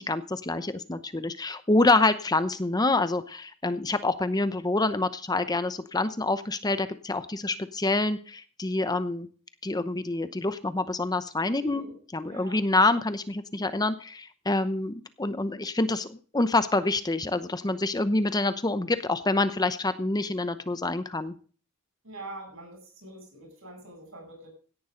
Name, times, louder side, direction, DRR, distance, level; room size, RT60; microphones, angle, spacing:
voice 1, 0.0-9.3 9.6-11.9 12.1-21.3, left 2 dB, 20° left, 11 dB, 0.8 m, -26 dB
voice 2, 11.6-11.9 12.3-12.6 22.0-24.5, right 1 dB, 65° right, 3 dB, 8.0 m, -44 dB
17.0 x 11.0 x 3.9 m, 0.41 s
head